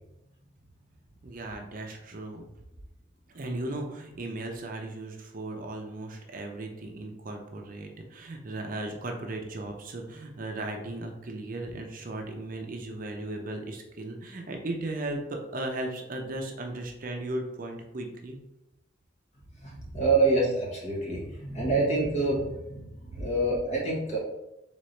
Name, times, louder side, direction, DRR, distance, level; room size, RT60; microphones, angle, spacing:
voice 1, 1.2-2.4 3.3-18.4 23.1-23.3, right 2 dB, 50° right, 3 dB, 0.6 m, -36 dB
voice 2, 19.6-24.2, right 2 dB, 40° left, -3 dB, 1.4 m, -27 dB
4.0 x 3.8 x 3.2 m, 0.91 s
head